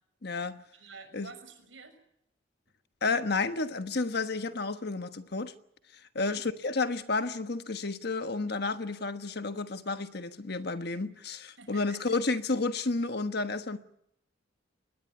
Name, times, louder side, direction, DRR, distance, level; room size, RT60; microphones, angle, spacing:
voice 1, 0.2-0.6 1.1-1.3 3.0-5.5 6.1-13.8, left 3 dB, 55° left, 1.3 m, -31 dB
voice 2, 0.7-1.9 6.1-6.4 11.6-12.0, right 4 dB, 80° right, 6.1 m, -49 dB
23.0 x 20.0 x 8.1 m
head